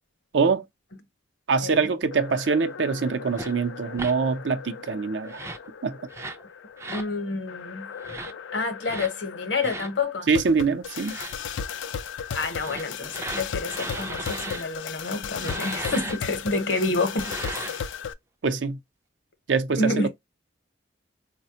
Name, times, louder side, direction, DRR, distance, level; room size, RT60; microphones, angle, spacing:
voice 1, 0.3-0.6 1.5-5.4 5.8-6.0 10.3-11.2 18.4-18.8 19.5-20.1, right 5 dB, 70° right, 0.6 m, -24 dB
sound 1, 2.1-18.1, left 7 dB, 90° left, 0.4 m, -36 dB
sound 2, 3.3-3.5 3.9-4.1 5.2-5.7 6.1-6.4 6.8-7.1 8.0-8.3 8.8-9.1 9.6-9.9 10.9-11.3 12.5-14.6 15.4-16.2 17.0-17.8, right 2 dB, 15° right, 0.3 m, -36 dB
voice 2, 6.9-7.9 8.5-10.3 12.3-17.6 19.7-20.1, left 3 dB, 75° left, 0.9 m, -28 dB
4.1 x 2.2 x 2.7 m
head